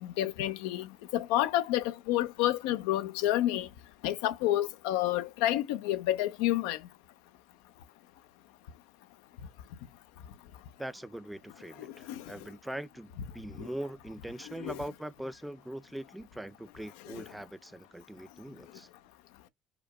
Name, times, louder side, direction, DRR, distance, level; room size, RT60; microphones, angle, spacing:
voice 1, 0.0-3.7 4.0-6.8 11.8-12.3 13.6-13.7 14.4-14.8 17.0-17.3, left 14 dB, 85° left, 0.6 m, -30 dB
voice 2, 10.8-18.9, right 1 dB, 5° right, 0.7 m, -42 dB
5.1 x 2.1 x 4.7 m
supercardioid pair, 70°, 0 cm